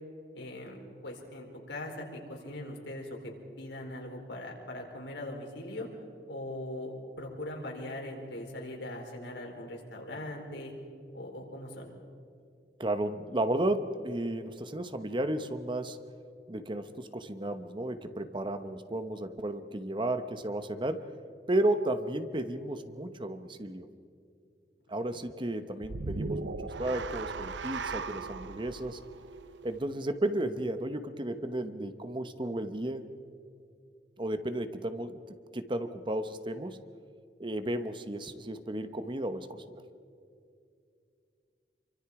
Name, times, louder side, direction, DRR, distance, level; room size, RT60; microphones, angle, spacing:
voice 1, 0.3-0.8 1.0-5.9 6.3-10.7 11.1-11.9 25.1-25.2, left 1 dB, 85° left, 1 dB, 4.5 m, -40 dB
voice 2, 12.8-16.0 16.5-21.1 21.5-23.9 24.9-29.0 29.6-33.0 34.2-36.8 37.4-39.6, right 1 dB, 25° right, 9 dB, 1.0 m, -33 dB
sound 1, 25.8-30.2, right 4 dB, 90° right, 0.8 m, -38 dB
28.5 x 24.5 x 4.9 m, 2.4 s
head